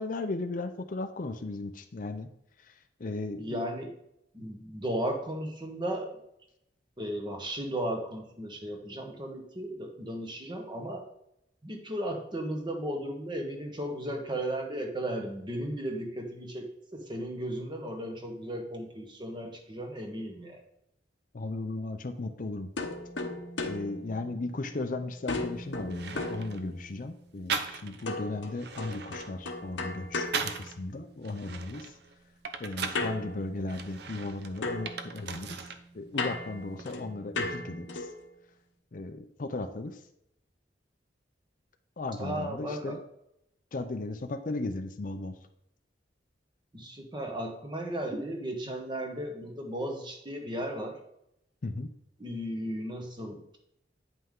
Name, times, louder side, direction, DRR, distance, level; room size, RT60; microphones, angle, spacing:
voice 1, 0.0-2.3 2.7-2.8 3.0-3.6 21.3-22.7 23.6-31.9 32.6-35.6 35.9-38.1 38.9-40.0 42.0-43.0 43.7-45.3 51.6-51.9, left 2 dB, 45° left, 8 dB, 0.5 m, -36 dB
voice 2, 3.4-3.9 4.3-6.2 7.0-11.1 11.6-20.6 42.2-43.0 46.7-51.0 52.2-53.6, right 1 dB, 25° right, 3 dB, 1.2 m, -35 dB
sound 1, 22.8-24.9 25.3-27.1 28.1-31.3 32.9-34.3 34.6-38.3, left 2 dB, 80° left, 0.9 m, -37 dB
sound 2, 25.9-26.7 27.5-28.1 28.5-30.8 31.2-33.1 33.7-35.8 36.1-36.9, right 5 dB, 60° right, 0.6 m, -38 dB
9.1 x 5.5 x 3.7 m, 0.78 s
head